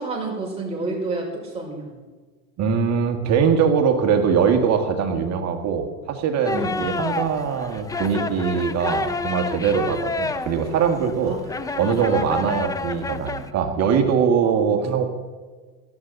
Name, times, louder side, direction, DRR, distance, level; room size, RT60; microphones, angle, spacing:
voice 1, 0.0-1.9 6.5-6.8 11.2-11.4 11.7-12.4 14.4-14.8, right 3 dB, 15° right, -3 dB, 5.5 m, -31 dB
voice 2, 2.6-11.4 11.8-15.1, right 6 dB, 40° right, 5 dB, 1.9 m, -22 dB
sound 1, 6.4-13.5, left 3 dB, 10° left, 0.5 m, -29 dB
17.5 x 13.0 x 4.0 m, 1.4 s
supercardioid pair, 125°, 41 cm